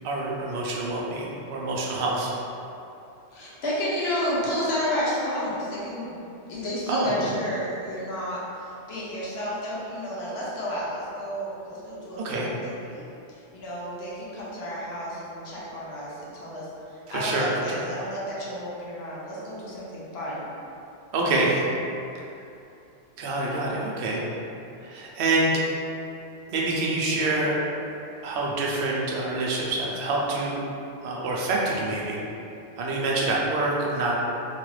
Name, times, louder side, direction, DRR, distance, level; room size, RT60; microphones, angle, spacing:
voice 1, 0.0-2.3 6.9-7.3 12.2-12.5 17.1-17.8 21.1-21.6 23.2-24.2 24.8-25.6 26.5-27.6 28.2-30.6 31.0-32.2 32.8-34.2, right 2 dB, 60° right, -4 dB, 0.7 m, -26 dB
voice 2, 3.3-20.5, equal, 60° left, -7 dB, 1.0 m, -32 dB
3.0 x 2.4 x 3.1 m, 2.7 s
omnidirectional pair, 1.3 m